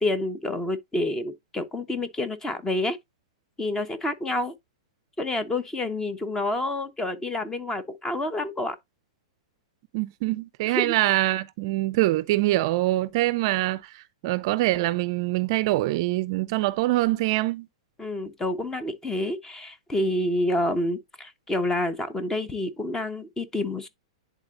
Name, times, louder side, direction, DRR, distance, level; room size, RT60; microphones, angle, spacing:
voice 1, 0.0-3.0 3.6-4.5 5.2-8.8 10.7-10.9 18.0-23.9, left 1 dB, 15° left, 1.0 m, -28 dB
voice 2, 9.9-17.7, right 17 dB, 50° right, 0.5 m, -24 dB
10.5 x 3.9 x 2.5 m
hypercardioid pair, 120°, 3 cm